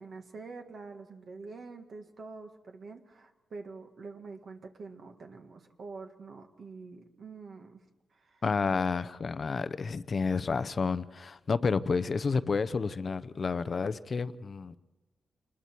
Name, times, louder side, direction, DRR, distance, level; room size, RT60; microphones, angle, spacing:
voice 1, 0.0-7.8 8.1-8.4, right 4 dB, 50° right, 1.7 m, -46 dB
voice 2, 8.4-14.8, left 4 dB, 40° left, 0.7 m, -30 dB
28.5 x 21.0 x 4.6 m
wide cardioid pair, 135°, 0 cm